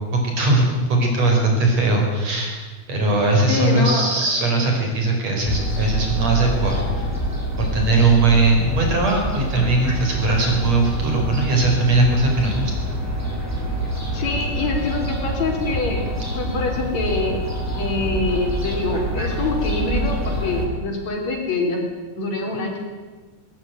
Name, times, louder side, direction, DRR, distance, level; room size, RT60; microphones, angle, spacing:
voice 1, 0.1-2.6 2.9-7.1 7.6-12.7, right 2 dB, 60° right, 1 dB, 6.2 m, -19 dB
voice 2, 3.5-4.1 14.1-17.4 17.8-21.8 22.2-22.8, left 3 dB, 65° left, 2 dB, 5.1 m, -25 dB
Fowl, 5.5-20.6, equal, 5° right, 5.2 m, -26 dB
19.5 x 19.0 x 9.4 m, 1.3 s
omnidirectional pair, 3.3 m